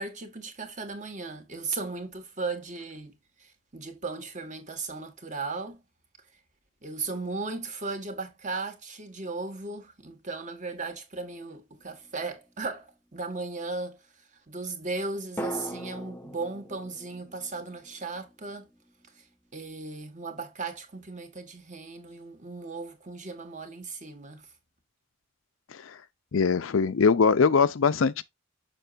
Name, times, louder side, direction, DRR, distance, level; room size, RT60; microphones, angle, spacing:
voice 1, 0.0-5.8 6.8-14.0 14.5-18.7 19.2-19.3 19.5-24.5, right 3 dB, 40° right, 1.6 m, -36 dB
sound 1, 11.8-12.9 15.4-19.3 19.6-19.7, right 1 dB, 10° left, 0.7 m, -41 dB
voice 2, 26.3-28.2, left 5 dB, 85° left, 0.5 m, -22 dB
6.7 x 6.0 x 2.5 m
head